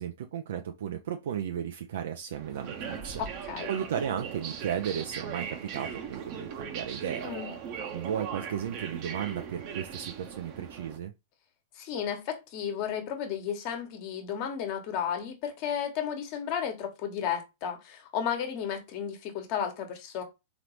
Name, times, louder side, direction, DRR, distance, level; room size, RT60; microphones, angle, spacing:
voice 1, 0.0-3.2 3.7-7.3 7.8-11.1, right 9 dB, 65° right, 0.4 m, -34 dB
sound 1, 2.3-11.0, right 7 dB, 45° right, 0.8 m, -39 dB
voice 2, 3.2-3.7 7.2-7.5 11.8-20.2, left 8 dB, 45° left, 1.2 m, -33 dB
3.9 x 3.0 x 3.2 m
hypercardioid pair, 110°, 0 cm